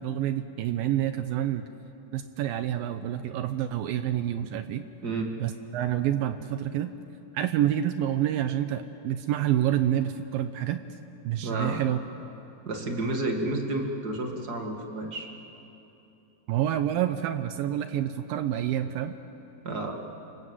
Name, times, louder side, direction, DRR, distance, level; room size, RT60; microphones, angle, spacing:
voice 1, 0.0-1.7 2.1-4.9 5.4-6.9 7.3-10.8 11.2-12.0 16.5-19.2, right 11 dB, 80° right, 10 dB, 2.1 m, -28 dB
voice 2, 11.4-11.8 12.6-15.3 19.6-19.9, right 2 dB, 35° right, 2 dB, 1.5 m, -30 dB
28.5 x 26.0 x 8.0 m, 3.0 s
omnidirectional pair, 4.9 m